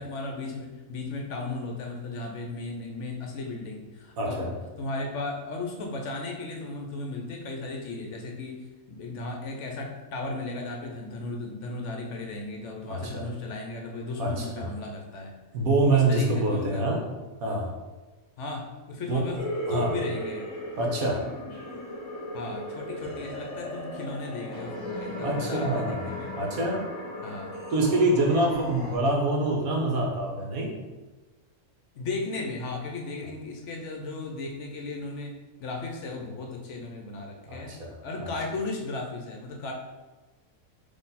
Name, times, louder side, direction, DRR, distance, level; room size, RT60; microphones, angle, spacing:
voice 1, 0.0-4.5 4.8-15.3 15.9-16.9 18.4-19.4 19.7-20.5 22.3-26.3 27.2-27.5 28.2-28.5 32.0-37.7 38.0-39.7, left 3 dB, 65° left, 1 dB, 0.9 m, -36 dB
voice 2, 4.2-4.5 12.9-13.3 14.2-14.7 15.5-17.0 17.4-17.7 19.1-19.3 19.7-19.9 20.8-21.3 25.2-26.0 26.4-26.8 27.7-30.7 37.5-38.3, right 2 dB, 80° right, -1 dB, 1.4 m, -26 dB
sound 1, 19.4-29.0, left 1 dB, 30° left, 1.4 m, -36 dB
4.1 x 3.0 x 4.0 m, 1.2 s
omnidirectional pair, 1.5 m